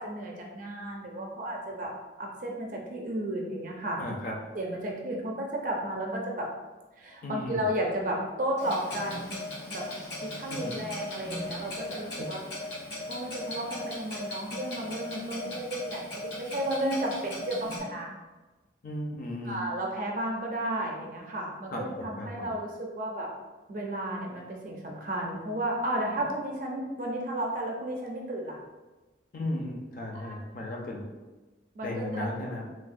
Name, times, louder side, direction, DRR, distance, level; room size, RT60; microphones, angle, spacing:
voice 1, 0.0-1.9 2.2-4.0 4.5-6.5 7.0-9.3 9.7-9.9 10.2-12.4 13.1-18.1 19.4-23.3 23.7-28.6 30.1-30.4 31.8-32.3, right 1 dB, 45° right, 0 dB, 0.4 m, -33 dB
voice 2, 4.0-4.4 7.2-7.7 10.5-10.8 12.2-12.3 18.8-19.6 21.7-22.6 29.3-31.1 31.8-32.7, left 1 dB, 50° left, 0 dB, 0.4 m, -35 dB
Clock, 8.6-17.8, left 1 dB, 65° left, 0.8 m, -38 dB
3.2 x 2.0 x 2.4 m, 1.2 s
head